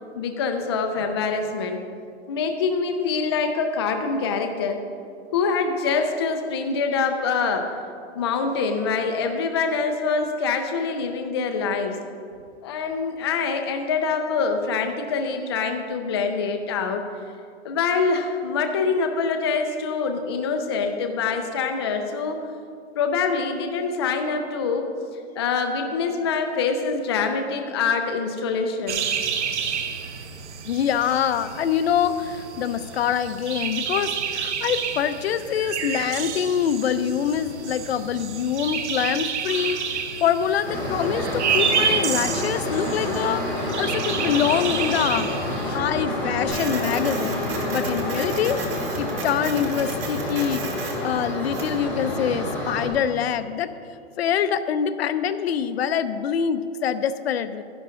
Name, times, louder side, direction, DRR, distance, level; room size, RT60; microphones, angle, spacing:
voice 1, 0.1-1.8 2.3-4.8 5.3-7.7 8.1-12.0 12.6-17.0 17.6-22.4 23.0-24.9 25.4-29.0, left 5 dB, 25° left, 5 dB, 0.4 m, -25 dB
sound 1, 28.9-45.8, right 7 dB, 85° right, 1.1 m, -29 dB
voice 2, 30.7-45.3 45.7-47.4 47.7-48.6 49.0-53.7 54.2-57.6, left 8 dB, 65° left, 12 dB, 0.6 m, -25 dB
sound 2, 40.6-52.9, left 1 dB, 5° left, 2.5 m, -28 dB
Printer, 46.5-51.8, right 5 dB, 55° right, 1.8 m, -36 dB
12.0 x 11.0 x 3.7 m, 2.4 s
hypercardioid pair, 170°, 34 cm